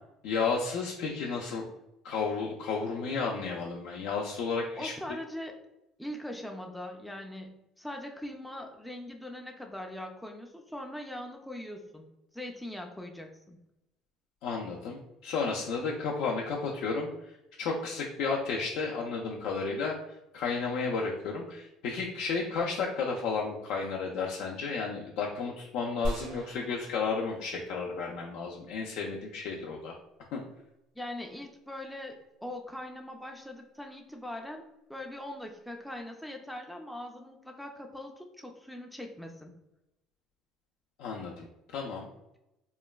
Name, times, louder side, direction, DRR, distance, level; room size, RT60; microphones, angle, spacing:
voice 1, 0.2-1.6 2.0-4.9 14.4-17.1 17.6-20.0 20.3-30.0 30.3-30.4 41.0-41.5 41.7-42.1, left 4 dB, 75° left, -2 dB, 0.4 m, -32 dB
voice 2, 4.8-5.6 6.0-12.1 12.3-13.6 31.0-39.5, left 1 dB, ahead, 2 dB, 0.3 m, -41 dB
sound 1, 26.0-28.3, equal, 75° right, 0.6 m, -39 dB
3.0 x 2.1 x 2.3 m, 0.90 s
cardioid pair, 115°, 0 cm